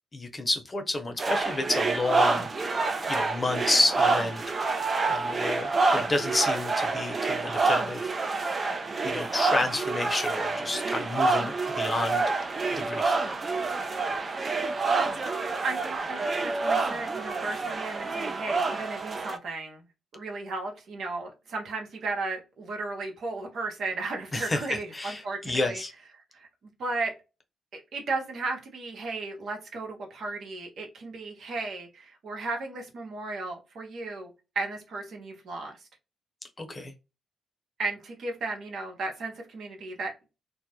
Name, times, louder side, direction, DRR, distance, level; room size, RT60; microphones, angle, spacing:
voice 1, 0.1-4.4 5.0-8.4 9.0-12.2 12.7-13.2 24.3-25.9 36.6-36.9, left 2 dB, 30° left, 0.8 m, -30 dB
sound 1, 1.2-19.4, right 3 dB, 40° right, 0.4 m, -28 dB
voice 2, 10.8-11.2 15.0-15.1 15.6-19.9 20.1-25.8 26.3-26.5 26.8-27.1 27.7-35.8 37.8-40.3, right 3 dB, 70° right, 0.9 m, -35 dB
2.2 x 2.0 x 2.8 m
supercardioid pair, 55°, 0 cm